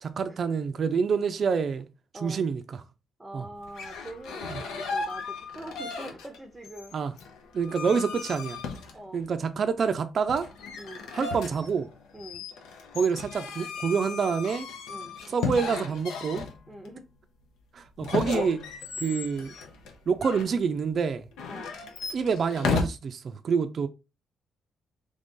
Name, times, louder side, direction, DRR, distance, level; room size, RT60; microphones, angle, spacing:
voice 1, 0.0-1.9 2.2-2.8 3.3-3.4 6.9-7.1 7.5-8.6 9.1-10.5 11.1-11.9 12.9-14.7 15.3-16.4 17.7-18.6 19.0-19.5 20.1-21.2 22.1-23.9, right 6 dB, 50° right, 0.4 m, -27 dB
voice 2, 3.2-6.9 8.9-9.2 10.8-11.1 12.1-12.5 14.9-15.2 16.7-17.1 21.4-21.8, right 1 dB, 15° right, 0.6 m, -43 dB
sound 1, 3.6-6.4 6.6-9.3 10.3-16.9 18.0-20.5 21.3-22.8, left 5 dB, 85° left, 0.7 m, -35 dB
3.3 x 2.6 x 3.6 m
cardioid pair, 90°, 0 cm